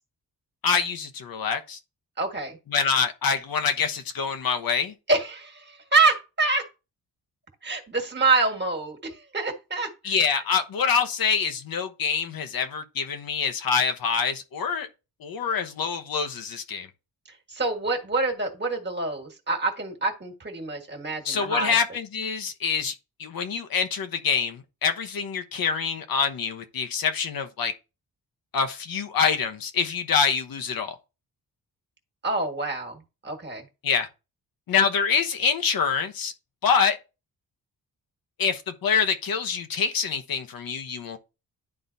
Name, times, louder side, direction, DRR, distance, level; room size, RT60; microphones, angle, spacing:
voice 1, 0.6-1.8 2.7-4.9 10.0-14.9 15.2-16.9 21.2-27.7 28.5-30.9 33.8-34.1 34.7-36.3 36.6-37.0 38.4-41.2, left 6 dB, 65° left, 1.0 m, -25 dB
voice 2, 2.2-2.6 5.1-6.6 7.6-9.9 17.5-21.7 32.2-33.6, right 3 dB, 30° right, 1.7 m, -26 dB
11.0 x 3.9 x 2.7 m
cardioid pair, 100°, 37 cm